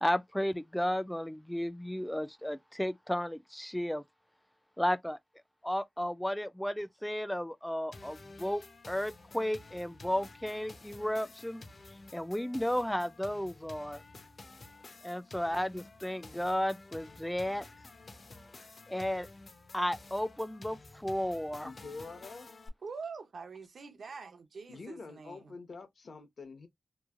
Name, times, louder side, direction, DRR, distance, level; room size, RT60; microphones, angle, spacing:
voice 1, 0.0-4.0 4.8-5.2 5.6-11.6 12.1-14.0 15.0-17.6 18.9-19.3 19.7-21.7, equal, 5° left, 0.3 m, -33 dB
sound 1, 7.9-22.7, left 3 dB, 55° left, 0.5 m, -52 dB
voice 2, 21.6-22.5 24.7-26.7, left 3 dB, 75° left, 0.9 m, -46 dB
voice 3, 22.8-25.5, right 5 dB, 85° right, 0.6 m, -45 dB
3.1 x 2.2 x 2.3 m
wide cardioid pair, 85°, 0 cm